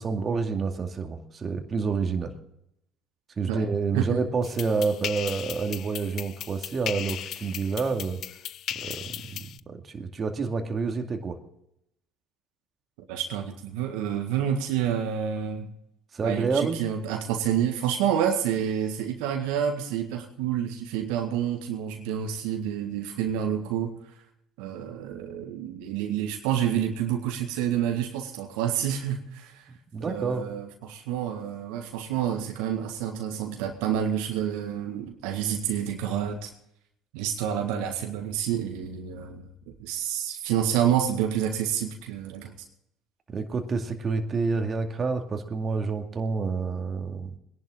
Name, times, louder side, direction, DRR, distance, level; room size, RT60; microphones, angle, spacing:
voice 1, 0.0-2.3 3.4-8.2 8.7-11.4 16.1-16.8 29.9-30.4 43.3-47.3, right 4 dB, 35° right, 4 dB, 2.3 m, -28 dB
sound 1, 4.4-9.6, left 11 dB, 55° left, 0.5 m, -37 dB
voice 2, 13.0-15.7 16.2-23.9 24.6-29.7 30.0-36.5 37.1-42.5, right 9 dB, 75° right, 4 dB, 1.8 m, -28 dB
22.0 x 11.0 x 3.8 m, 0.79 s
hypercardioid pair, 65°, 0 cm